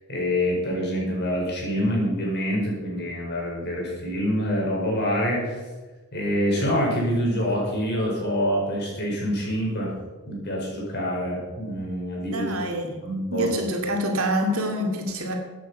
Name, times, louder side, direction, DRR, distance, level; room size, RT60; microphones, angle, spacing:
voice 1, 0.1-5.5 6.1-9.9 10.3-12.4 13.0-13.5, equal, 50° left, -2 dB, 5.1 m, -26 dB
voice 2, 12.3-13.0 13.3-15.3, equal, 70° right, 3 dB, 2.5 m, -26 dB
14.5 x 9.2 x 5.6 m, 1.2 s
head